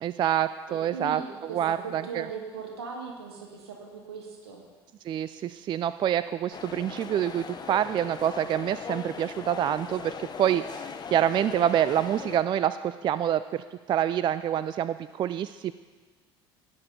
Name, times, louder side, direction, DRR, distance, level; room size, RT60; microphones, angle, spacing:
voice 1, 0.0-1.2 1.5-2.3 5.1-15.7, right 10 dB, 35° right, 14 dB, 0.3 m, -27 dB
voice 2, 0.7-4.6, right 5 dB, 75° right, 1 dB, 2.3 m, -39 dB
sound 1, 6.5-12.4, left 6 dB, 30° left, 0.9 m, -39 dB
18.0 x 7.4 x 4.3 m, 1.4 s
figure-of-eight pair, 65°, 13 cm